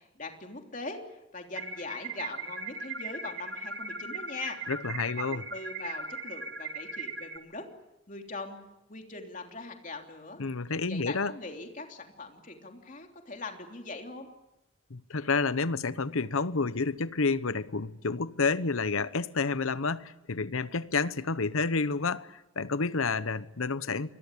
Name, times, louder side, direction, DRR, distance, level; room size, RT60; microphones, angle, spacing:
voice 1, 0.0-4.6 5.2-7.7 8.1-8.6 8.9-10.4 10.9-14.3, left 3 dB, 40° left, 3.3 m, -41 dB
sound 1, 1.6-7.4, right 4 dB, 60° right, 2.3 m, -38 dB
voice 2, 4.7-5.4 10.4-11.3 14.9-24.1, left 4 dB, 85° left, 1.0 m, -29 dB
27.5 x 22.0 x 8.5 m
head